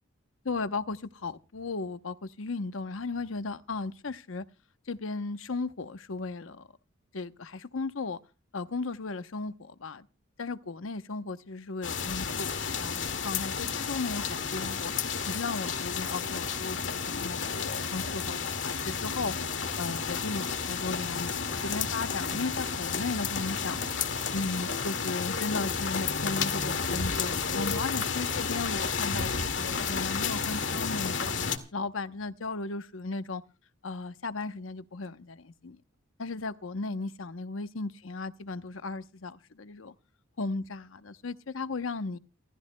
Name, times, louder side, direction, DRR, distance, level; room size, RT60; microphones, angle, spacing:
voice 1, 0.4-4.4 4.9-6.7 7.1-8.2 8.5-10.1 10.4-19.3 19.8-23.8 24.3-31.4 31.7-33.4 33.8-35.8 36.2-39.9 40.4-42.2, left 3 dB, 90° left, 0.9 m, -36 dB
sound 1, 11.8-31.6, left 6 dB, 65° left, 2.1 m, -31 dB
30.0 x 14.0 x 2.2 m
head